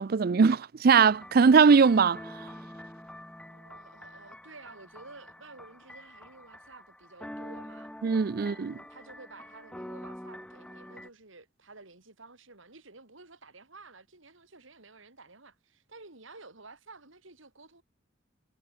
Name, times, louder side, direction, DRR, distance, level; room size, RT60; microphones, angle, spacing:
voice 1, 0.0-2.2 8.0-8.8, right 5 dB, 45° right, 0.4 m, -21 dB
sound 1, 1.1-11.1, left 1 dB, 5° left, 0.7 m, -46 dB
voice 2, 3.5-7.9 8.3-17.8, right 3 dB, 75° right, 3.9 m, -52 dB
head